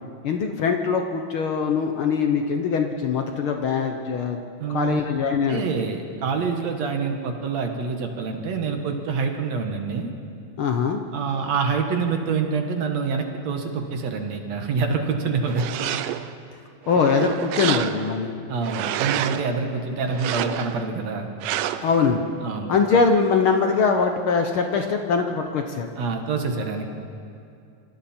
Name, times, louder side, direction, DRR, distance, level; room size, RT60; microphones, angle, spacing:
voice 1, 0.2-4.4 4.7-5.6 10.6-11.0 16.9-18.3 21.8-22.2 22.7-25.9, left 5 dB, 75° left, 4 dB, 1.2 m, -22 dB
voice 2, 4.6-5.0 5.5-10.1 11.1-15.9 18.5-21.3 22.4-22.8 26.0-26.9, right 5 dB, 60° right, 4 dB, 2.4 m, -26 dB
sound 1, 15.4-16.4 16.9-18.2 18.6-19.5 20.1-20.9 21.4-22.0, right 12 dB, 90° right, 2.3 m, -28 dB
26.5 x 26.0 x 4.4 m, 2.5 s
omnidirectional pair, 3.7 m